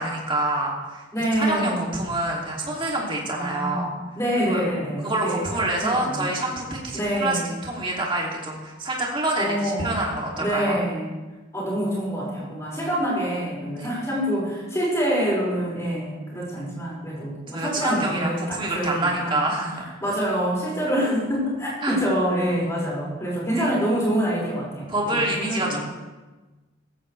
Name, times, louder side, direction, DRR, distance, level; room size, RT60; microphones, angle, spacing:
voice 1, 0.0-1.0 1.4-3.9 4.5-4.6 5.0-10.8 13.8-13.9 17.5-19.9 21.8-22.0 23.5-23.7 24.9-25.8, right 2 dB, 25° right, -2 dB, 2.7 m, -27 dB
voice 2, 1.1-2.0 3.3-3.9 4.2-6.4 6.9-7.5 9.4-10.0 10.4-11.1 11.5-19.4 20.0-25.8, equal, 15° left, -6 dB, 5.5 m, -26 dB
17.0 x 15.0 x 3.3 m, 1.2 s
head